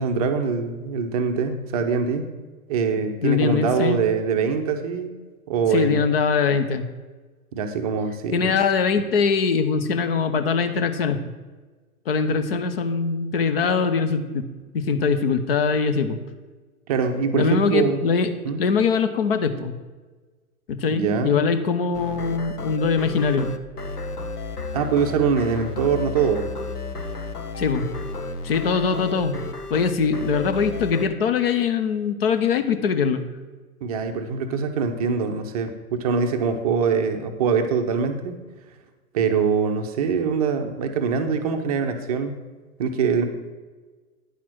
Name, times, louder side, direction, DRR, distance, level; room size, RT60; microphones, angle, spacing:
voice 1, 0.0-2.3 2.7-5.1 5.5-6.0 7.5-8.5 16.9-18.0 18.4-18.6 20.9-21.4 24.7-26.5 33.8-38.4 39.1-42.4 42.8-43.2, right 6 dB, 25° right, 6 dB, 0.6 m, -23 dB
voice 2, 3.2-4.0 5.7-6.8 8.3-11.3 12.1-14.5 14.7-16.2 17.3-18.3 18.6-19.7 20.7-23.5 27.6-27.8 28.4-29.4 29.7-33.2, left 5 dB, 40° left, 10 dB, 0.8 m, -22 dB
sound 1, 21.9-31.1, left 3 dB, 90° left, 0.8 m, -33 dB
9.8 x 5.9 x 6.0 m, 1.3 s
figure-of-eight pair, 115°, 45 cm